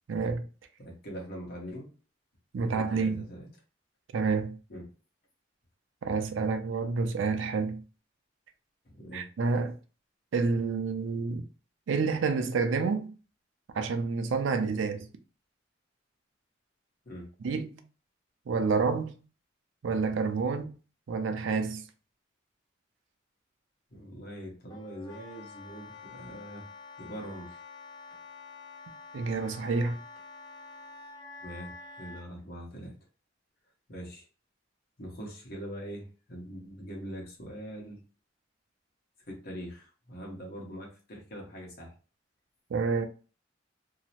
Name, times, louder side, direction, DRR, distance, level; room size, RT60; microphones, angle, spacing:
voice 1, 0.1-0.4 2.5-3.2 4.1-4.6 6.0-7.8 9.1-9.8 10.3-11.4 11.9-13.1 13.7-15.1 17.4-17.8 18.5-19.2 19.8-20.7 21.1-21.8 29.1-30.0 42.7-43.1, right 4 dB, 80° right, 0.4 m, -29 dB
voice 2, 0.8-1.9 2.5-3.5 4.7-4.8 8.8-9.2 17.0-17.3 23.9-26.7 27.0-27.6 31.4-31.7 32.0-33.0 33.9-34.3 35.0-38.0 39.3-41.9, equal, 55° left, 1.0 m, -42 dB
Wind instrument woodwind instrument, 24.7-32.3, left 4 dB, 20° left, 0.3 m, -48 dB
2.7 x 2.0 x 2.8 m
head